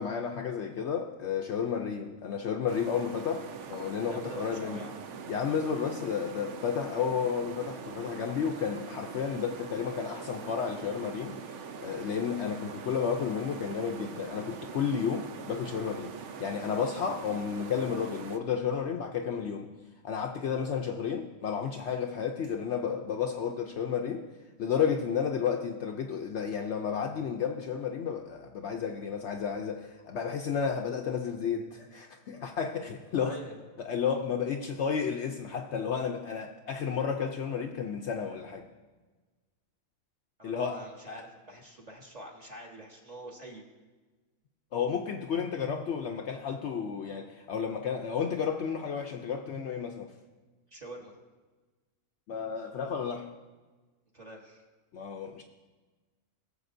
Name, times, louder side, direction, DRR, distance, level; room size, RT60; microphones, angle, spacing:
voice 1, 0.0-4.8 5.3-11.4 11.8-16.1 16.4-19.7 20.0-24.3 24.6-33.4 33.9-38.7 40.4-40.8 41.1-41.2 44.7-50.1 52.3-53.3 54.9-55.4, left 7 dB, 65° left, 3 dB, 0.8 m, -32 dB
sound 1, 2.7-18.4, right 6 dB, 65° right, 0.9 m, -43 dB
voice 2, 4.1-4.9 33.1-33.6 40.4-43.6 50.7-51.2 54.1-54.6, right 1 dB, 30° right, -1 dB, 1.4 m, -45 dB
19.5 x 7.1 x 2.6 m, 1.3 s
omnidirectional pair, 1.5 m